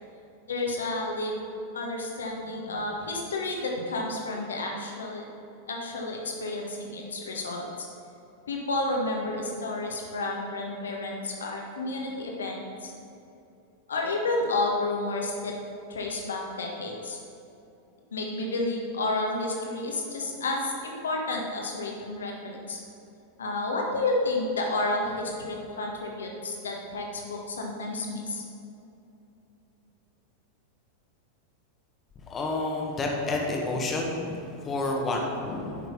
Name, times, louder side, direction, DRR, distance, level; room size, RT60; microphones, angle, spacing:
voice 1, 0.5-1.4 1.7-5.2 5.7-7.9 8.5-12.9 13.9-15.5 15.9-17.2 18.1-22.8 23.4-28.4, left 2 dB, 70° left, 0 dB, 1.7 m, -31 dB
voice 2, 32.3-35.8, left 2 dB, 20° left, 0 dB, 1.6 m, -29 dB
9.9 x 6.4 x 5.7 m, 2.7 s
figure-of-eight pair, 90°, 0 cm